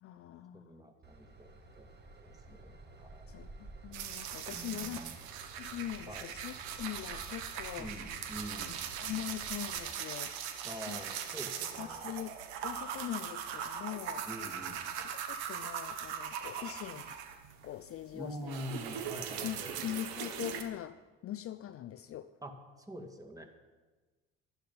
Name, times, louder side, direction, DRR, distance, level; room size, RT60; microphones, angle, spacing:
voice 1, 0.0-0.8 3.3-5.0 5.6-7.9 8.5-10.3 10.9-11.0 11.8-12.3 12.6-14.2 15.0-17.2 17.6-19.0 19.4-22.3, left 12 dB, 45° left, 12 dB, 0.5 m, -42 dB
voice 2, 0.5-1.9 2.2-3.3 4.5-5.2 6.1-6.3 7.8-8.8 10.6-12.2 14.2-14.9 16.6-16.8 18.1-19.9 22.4-23.5, equal, 10° right, 3 dB, 2.2 m, -46 dB
Train / Engine, 1.0-9.8, right 2 dB, 30° right, 1.9 m, -52 dB
sound 1, 3.9-17.7 18.0-20.6, right 8 dB, 80° right, 1.3 m, -40 dB
12.0 x 11.5 x 5.5 m, 1.3 s
hypercardioid pair, 70°, 32 cm